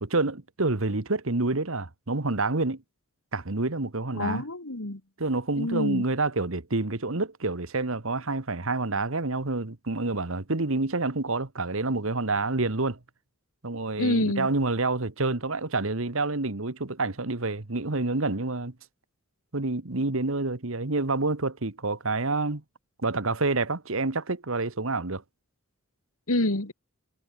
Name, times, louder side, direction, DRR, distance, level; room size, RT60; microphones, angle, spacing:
voice 1, 0.0-2.8 3.3-4.4 5.2-13.0 13.6-18.7 19.5-22.6 23.0-25.2, right 3 dB, 65° right, 1.5 m, -28 dB
voice 2, 4.2-5.0 5.6-6.0 14.0-14.5 26.3-26.7, left 2 dB, 70° left, 2.2 m, -27 dB
head